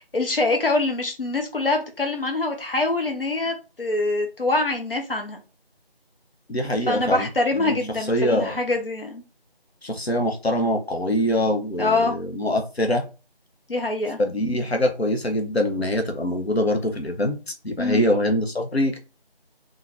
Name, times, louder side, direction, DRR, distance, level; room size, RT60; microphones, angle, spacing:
voice 1, 0.0-5.4 6.9-9.2 11.8-12.1 13.7-14.2 17.8-18.0, left 2 dB, 65° left, 4 dB, 1.0 m, -24 dB
voice 2, 6.5-7.3 7.5-8.6 9.8-13.0 14.2-19.0, left 1 dB, 85° left, 5 dB, 1.0 m, -24 dB
3.8 x 2.7 x 3.4 m, 0.31 s
figure-of-eight pair, 175°, 31 cm